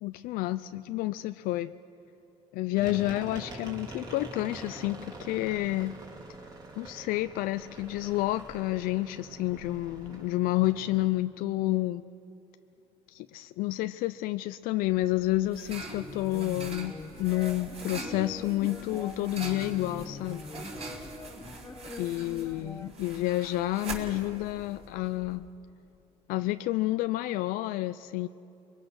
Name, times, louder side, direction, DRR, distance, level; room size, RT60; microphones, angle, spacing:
voice 1, 0.0-1.7 2.5-5.9 6.8-12.0 13.1-20.4 22.0-25.5 26.3-28.3, left 17 dB, 85° left, 11 dB, 0.4 m, -30 dB
sound 1, 2.8-11.0, right 2 dB, 30° right, 3.0 m, -45 dB
sound 2, 14.9-25.5, right 3 dB, 45° right, 5.6 m, -43 dB
sound 3, 15.7-22.9, left 3 dB, 20° left, 1.3 m, -44 dB
29.0 x 22.0 x 6.4 m, 2.9 s
cardioid pair, 125°, 14 cm